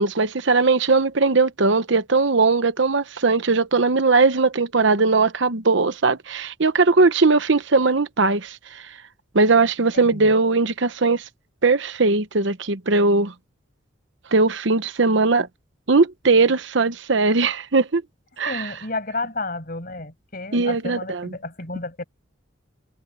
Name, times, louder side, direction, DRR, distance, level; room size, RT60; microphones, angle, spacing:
voice 1, 0.0-8.9 9.3-11.2 11.6-13.3 14.3-15.5 15.9-18.0 18.4-18.6 20.5-21.3, right 3 dB, 60° right, 0.9 m, -19 dB
voice 2, 9.9-10.3 18.5-22.0, left 2 dB, 45° left, 5.9 m, -31 dB
head